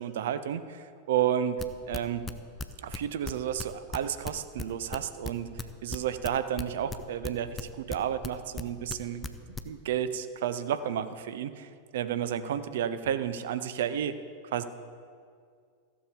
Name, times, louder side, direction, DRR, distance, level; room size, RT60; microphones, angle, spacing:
voice 1, 0.0-1.6 1.9-2.2 2.8-9.3 9.6-14.2 14.5-14.6, right 9 dB, 55° right, 12 dB, 0.6 m, -31 dB
sound 1, 1.6-7.3 7.6-9.0 9.2-9.6, left 3 dB, 15° left, 0.6 m, -36 dB
15.0 x 7.2 x 5.1 m, 2.2 s
figure-of-eight pair, 90°, 0 cm